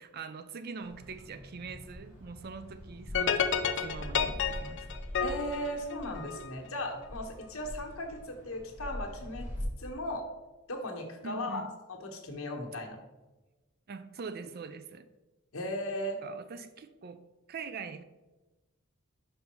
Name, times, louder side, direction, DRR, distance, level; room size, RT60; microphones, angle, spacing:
voice 1, 0.0-4.8 11.2-11.7 13.9-15.1 16.2-17.2 17.5-18.0, right 5 dB, 45° right, 0.4 m, -43 dB
sound 1, 0.8-9.6, equal, 10° right, 1.9 m, -44 dB
sound 2, 3.1-6.5, left 7 dB, 60° left, 0.5 m, -30 dB
voice 2, 5.2-9.5 9.8-10.3 10.7-13.0 15.5-16.2, left 1 dB, 80° left, 1.3 m, -37 dB
5.4 x 5.3 x 4.4 m
head